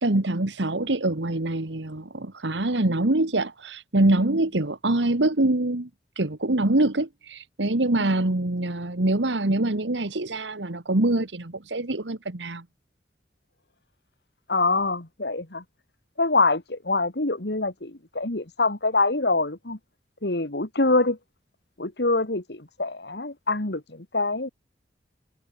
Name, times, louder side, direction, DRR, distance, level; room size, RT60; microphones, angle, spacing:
voice 1, 0.0-5.9 6.1-12.6, right 2 dB, 85° right, 1.6 m, -24 dB
voice 2, 14.5-15.6 16.2-19.8 20.2-21.2 21.8-24.5, left 3 dB, 70° left, 2.1 m, -25 dB
head